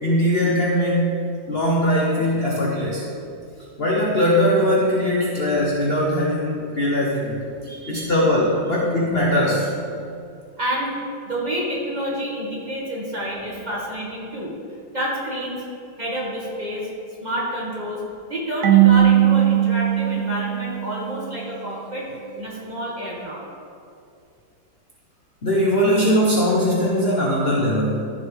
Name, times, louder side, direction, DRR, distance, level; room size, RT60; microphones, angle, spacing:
voice 1, 0.0-1.2 1.5-3.0 3.8-7.4 7.9-9.7 25.4-28.1, equal, 40° left, -4 dB, 1.0 m, -20 dB
voice 2, 7.7-8.1 10.6-11.0 11.3-14.5 14.9-15.7 16.0-16.9 17.2-18.0 18.3-22.1 22.3-23.4, equal, 20° right, -5 dB, 1.9 m, -28 dB
Marimba xylophone / Wood, 18.6-21.4, right 12 dB, 70° right, 0.7 m, -18 dB
14.0 x 7.2 x 3.5 m, 2.4 s
omnidirectional pair, 2.1 m